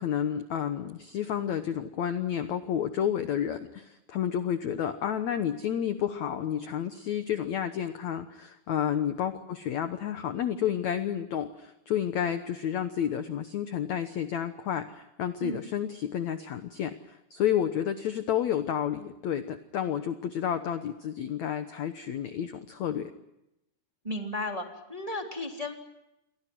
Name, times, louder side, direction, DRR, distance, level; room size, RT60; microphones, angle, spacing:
voice 1, 0.0-16.9 17.3-23.1, left 9 dB, 70° left, 9 dB, 1.7 m, -30 dB
voice 2, 24.0-25.7, left 1 dB, 10° right, 3 dB, 2.1 m, -34 dB
29.0 x 24.0 x 6.1 m, 0.88 s
omnidirectional pair, 4.8 m